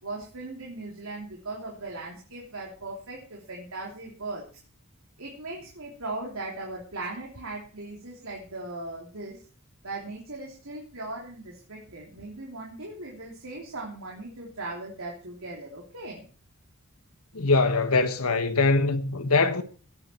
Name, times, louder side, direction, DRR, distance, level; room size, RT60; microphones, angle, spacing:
voice 1, 0.0-4.5 5.2-9.4 9.8-16.2, right 2 dB, 70° right, 3.3 m, -38 dB
voice 2, 17.3-19.6, left 3 dB, 85° left, 1.4 m, -22 dB
17.0 x 10.0 x 4.5 m
head